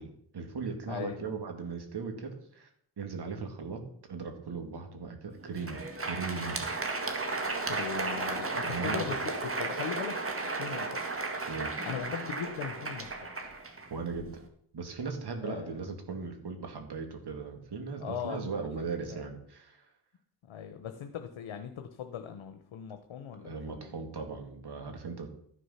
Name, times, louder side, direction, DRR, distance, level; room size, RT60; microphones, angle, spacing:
voice 1, 0.0-2.7 3.0-3.8 4.1-6.7 8.6-9.1 11.5-11.7 13.9-14.3 14.7-19.9 23.3-25.3, right 4 dB, 55° right, 4 dB, 2.4 m, -38 dB
voice 2, 0.9-1.3 7.6-10.2 10.6-11.0 11.8-13.3 15.4-15.8 18.0-19.3 20.4-24.1, left 8 dB, 80° left, 8 dB, 1.0 m, -39 dB
Crowd, 5.4-14.4, right 3 dB, 30° right, 1.8 m, -34 dB
13.5 x 6.5 x 5.7 m, 0.66 s
wide cardioid pair, 110°, 46 cm